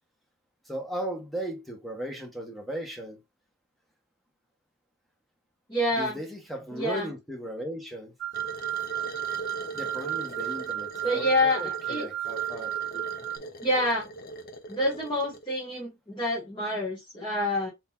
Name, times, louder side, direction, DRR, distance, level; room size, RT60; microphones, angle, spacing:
voice 1, 0.7-3.2 5.9-8.1 9.7-13.0 13.4-13.5, right 1 dB, ahead, 0.9 m, -37 dB
voice 2, 5.7-6.2 6.7-7.1 11.0-12.1 13.6-14.1 14.7-17.7, left 1 dB, 20° left, 1.3 m, -27 dB
sound 1, 8.2-13.4, right 12 dB, 55° right, 0.4 m, -33 dB
sound 2, 8.3-15.5, right 2 dB, 45° left, 0.6 m, -41 dB
4.2 x 3.9 x 2.4 m
head